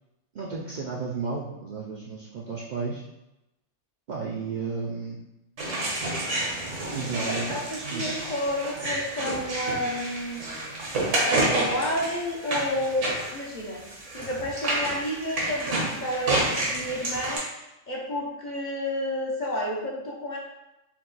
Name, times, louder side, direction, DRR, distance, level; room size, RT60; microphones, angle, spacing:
voice 1, 0.3-3.0 4.1-5.2 6.9-7.6 7.9-8.0, right 4 dB, 60° right, -4 dB, 0.5 m, -32 dB
sound 1, 5.6-17.4, right 1 dB, 80° right, 1.4 m, -29 dB
voice 2, 7.1-10.5 11.2-13.8 14.1-17.4 17.9-20.4, equal, 50° left, -3 dB, 0.7 m, -30 dB
4.4 x 2.2 x 3.9 m, 0.93 s
omnidirectional pair, 1.2 m